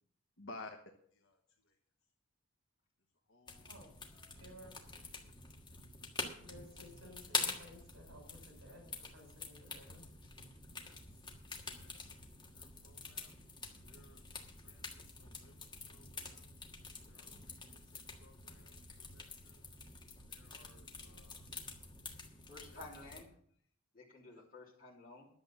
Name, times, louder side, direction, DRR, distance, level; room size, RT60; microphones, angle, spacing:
voice 1, 0.4-0.7 1.2-1.4 3.3-3.7 10.8-11.0 11.8-11.9 12.5-13.4 13.9-14.2 14.6-15.5 15.9-16.4 17.1-18.8 19.1-19.6 20.3-21.6 24.4-24.5, left 2 dB, 65° left, 2 dB, 1.2 m, -56 dB
sound 1, 3.5-23.2, left 4 dB, 20° left, 1.5 m, -46 dB
voice 2, 4.3-4.8 6.4-10.1, left 1 dB, 60° right, 2 dB, 5.6 m, -56 dB
voice 3, 22.5-23.3 23.9-25.3, left 2 dB, 40° left, -5 dB, 3.2 m, -53 dB
11.0 x 7.7 x 7.2 m, 0.63 s
head